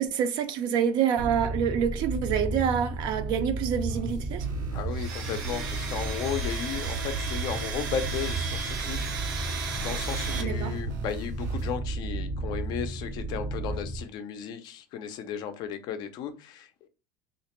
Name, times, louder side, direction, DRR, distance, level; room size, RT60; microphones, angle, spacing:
voice 1, 0.0-4.5 10.4-10.8, right 8 dB, 50° right, 0.4 m, -27 dB
sound 1, 1.2-14.0, right 2 dB, ahead, 0.6 m, -34 dB
sound 2, 3.8-11.8, right 4 dB, 90° right, 0.8 m, -38 dB
voice 2, 4.7-16.9, left 8 dB, 45° left, 0.4 m, -35 dB
Domestic sounds home sounds, 4.9-10.4, right 5 dB, 70° right, 1.0 m, -35 dB
2.4 x 2.1 x 2.9 m
supercardioid pair, 140°, 10 cm